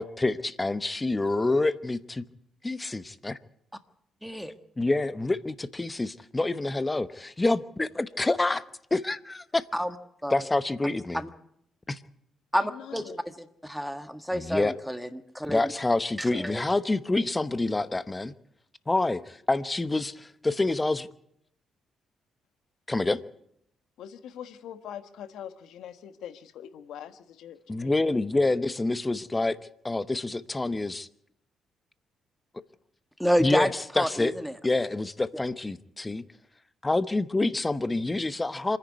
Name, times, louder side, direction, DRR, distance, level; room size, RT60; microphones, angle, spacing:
voice 1, 0.0-2.2 2.6-3.4 4.8-8.6 8.9-9.6 10.3-11.2 11.9-12.0 14.3-14.7 15.5-18.3 18.9-21.1 22.9-23.2 27.7-29.6 29.8-31.1 33.4-34.3 34.6-36.2 36.8-38.8, left 2 dB, 20° left, 14 dB, 0.9 m, -27 dB
voice 2, 4.2-4.5 9.7-9.9 10.2-10.4 11.1-11.3 12.5-13.1 13.4-15.7 16.2-16.6 33.2-33.7 33.9-34.5 35.3-35.4, equal, ahead, 9 dB, 1.5 m, -29 dB
voice 3, 12.5-13.2 24.0-28.2, left 9 dB, 80° left, 10 dB, 1.4 m, -43 dB
26.0 x 10.5 x 9.5 m, 0.74 s
cardioid pair, 90°, 0 cm